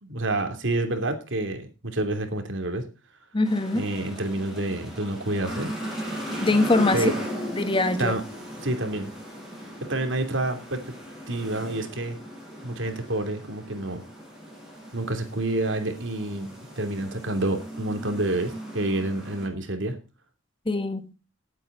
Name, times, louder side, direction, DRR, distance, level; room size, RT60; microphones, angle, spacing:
voice 1, 0.0-2.8 3.7-5.7 6.9-7.1 8.0-8.2 8.6-9.1 9.9-10.8 11.3-12.2 12.6-14.0 14.9-20.0, right 2 dB, 65° right, 2.9 m, -28 dB
voice 2, 3.3-3.9 6.4-7.1 7.5-8.1 20.7-21.1, left 2 dB, 25° left, 1.3 m, -23 dB
sound 1, 3.4-19.5, equal, ahead, 7.6 m, -37 dB
18.0 x 8.6 x 3.9 m
head